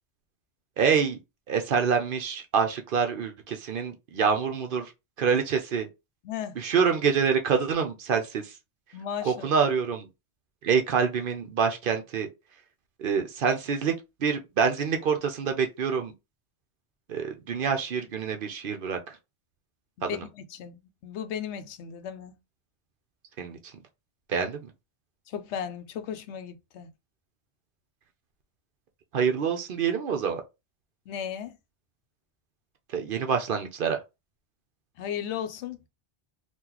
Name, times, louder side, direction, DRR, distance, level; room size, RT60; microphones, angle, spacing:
voice 1, 0.8-1.2 1.5-4.9 5.2-5.9 6.6-8.6 9.2-10.1 10.6-12.3 13.0-13.9 14.2-16.1 17.1-19.2 20.0-20.3 23.4-23.7 24.3-24.7 29.1-30.4 32.9-34.0, right 6 dB, 60° right, 0.7 m, -26 dB
voice 2, 6.2-6.6 8.9-9.5 20.0-22.4 25.3-26.9 31.1-31.6 35.0-35.9, left 8 dB, 85° left, 0.9 m, -36 dB
2.9 x 2.5 x 3.8 m
omnidirectional pair, 1.2 m